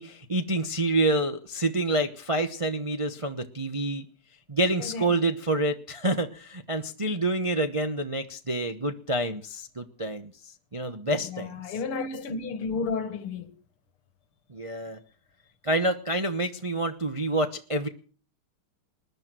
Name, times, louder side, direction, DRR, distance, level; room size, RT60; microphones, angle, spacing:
voice 1, 0.0-4.0 4.5-11.5 14.5-15.0 15.6-17.9, right 1 dB, 35° right, 0.5 m, -28 dB
voice 2, 4.8-5.1 11.2-13.5, left 4 dB, 80° left, 2.4 m, -32 dB
20.5 x 11.0 x 6.2 m
omnidirectional pair, 2.4 m